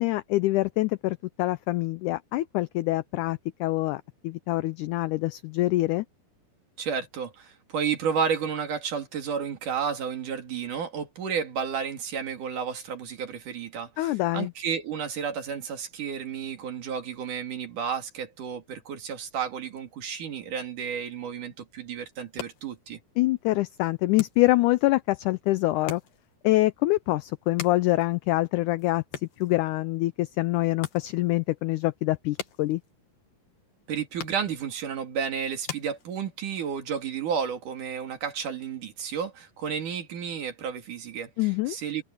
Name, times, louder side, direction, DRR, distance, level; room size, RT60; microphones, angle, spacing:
voice 1, 0.0-6.1 14.0-14.5 23.2-26.0 26.4-29.0 29.4-32.8 41.4-41.8, left 18 dB, 85° left, 1.7 m, -25 dB
voice 2, 6.8-23.0 33.9-42.0, right 7 dB, 65° right, 3.8 m, -32 dB
sound 1, 22.1-36.6, left 8 dB, 70° left, 3.8 m, -45 dB
omnidirectional pair, 4.1 m